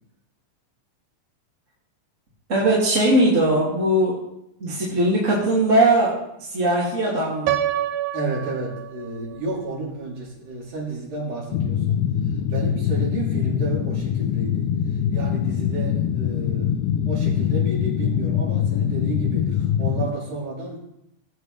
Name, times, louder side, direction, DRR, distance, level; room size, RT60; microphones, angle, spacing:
voice 1, 2.5-4.2 4.6-6.1 6.5-7.6, right 1 dB, 25° right, -6 dB, 2.3 m, -19 dB
Piano, 7.5-9.4, right 11 dB, 85° right, 1.5 m, -27 dB
voice 2, 8.1-16.8 17.1-20.8, right 2 dB, 65° right, -4 dB, 4.4 m, -32 dB
sound 1, 11.5-20.1, left 9 dB, 80° left, 1.9 m, -23 dB
18.0 x 8.5 x 3.2 m, 0.81 s
omnidirectional pair, 3.8 m